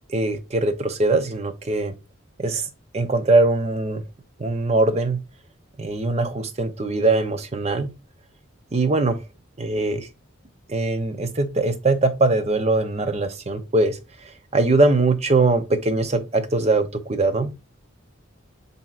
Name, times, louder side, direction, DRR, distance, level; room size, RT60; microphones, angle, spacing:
voice 1, 0.1-1.9 2.4-2.6 2.9-4.0 4.4-5.2 5.8-7.9 8.7-9.2 9.6-10.1 10.7-14.0 14.5-17.5, right 2 dB, 30° right, 0.6 m, -21 dB
7.2 x 2.7 x 2.4 m
head